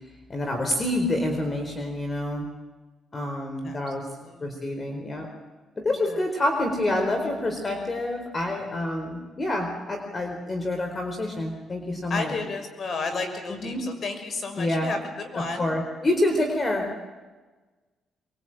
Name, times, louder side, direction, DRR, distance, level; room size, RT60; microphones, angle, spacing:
voice 1, 0.3-2.5 3.1-4.0 4.4-5.3 5.8-12.4 13.5-13.8 14.6-14.9 15.3-16.9, left 1 dB, 30° left, 4 dB, 4.4 m, -27 dB
voice 2, 3.6-4.5 6.0-6.2 12.1-15.7, left 3 dB, 50° left, 7 dB, 6.3 m, -33 dB
24.0 x 22.5 x 9.0 m, 1.3 s
cardioid pair, 90°, 0 cm